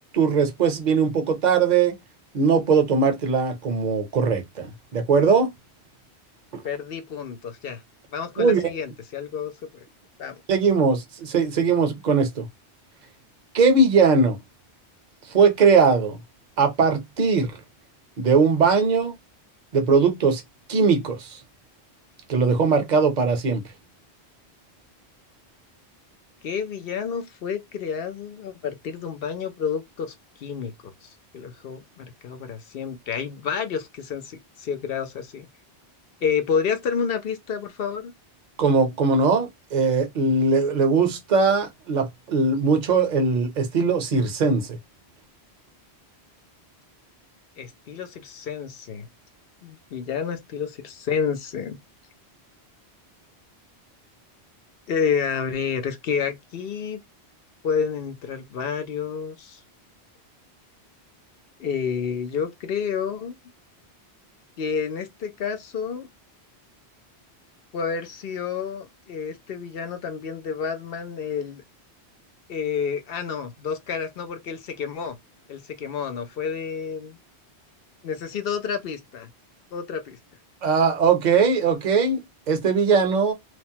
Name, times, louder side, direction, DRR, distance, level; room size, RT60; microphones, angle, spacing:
voice 1, 0.1-2.0 2.3-4.7 4.9-5.5 6.5-6.6 8.4-8.6 10.5-12.5 13.5-14.4 15.3-16.2 16.6-17.6 18.2-19.2 19.7-20.4 20.7-21.4 22.3-23.6 38.6-44.8 80.6-83.3, right 5 dB, 50° right, 0.7 m, -20 dB
voice 2, 6.6-7.8 8.1-9.8 10.2-10.4 26.4-30.1 30.4-35.5 36.2-38.1 47.6-49.1 49.6-51.8 54.9-57.0 57.6-59.6 61.6-63.4 64.6-66.1 67.7-71.6 72.5-75.2 75.5-77.2 78.0-79.3 79.7-80.2, left 6 dB, 65° left, 0.8 m, -29 dB
3.1 x 2.0 x 2.7 m
omnidirectional pair, 1.1 m